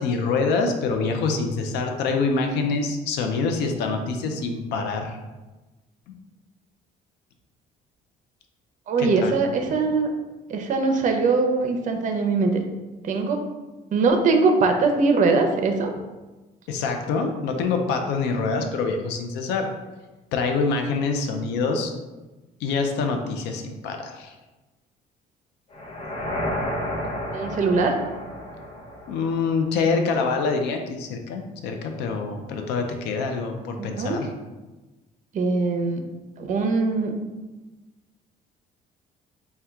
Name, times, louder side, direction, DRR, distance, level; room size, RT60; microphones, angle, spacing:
voice 1, 0.0-5.2 6.1-6.2 9.0-9.4 16.7-19.7 20.3-21.9 22.6-24.3 29.1-34.3, left 4 dB, 85° left, 4 dB, 0.5 m, -25 dB
voice 2, 8.9-10.1 10.5-12.6 13.0-13.4 13.9-15.9 27.3-28.0 33.8-34.3 35.3-36.0 36.4-37.2, right 4 dB, 50° right, 5 dB, 0.6 m, -22 dB
sound 1, 25.7-29.8, left 1 dB, 35° left, 0.8 m, -31 dB
4.3 x 2.3 x 3.5 m, 1.2 s
cardioid pair, 110°, 17 cm